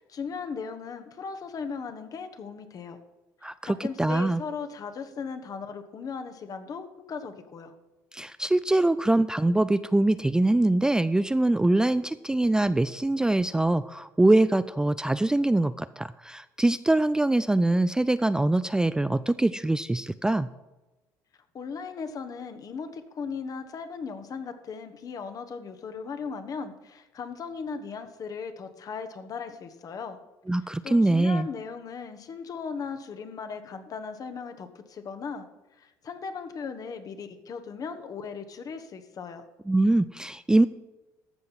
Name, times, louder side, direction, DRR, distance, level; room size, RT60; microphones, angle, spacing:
voice 1, 0.0-3.0 3.6-7.7 21.5-30.2 30.8-35.4 35.8-39.4, left 5 dB, 45° left, 8 dB, 1.3 m, -37 dB
voice 2, 3.4-4.4 8.1-20.5 30.5-31.5 39.7-40.7, right 2 dB, 10° right, 13 dB, 0.4 m, -23 dB
14.5 x 5.4 x 5.9 m, 1.1 s
hypercardioid pair, 70°, 8 cm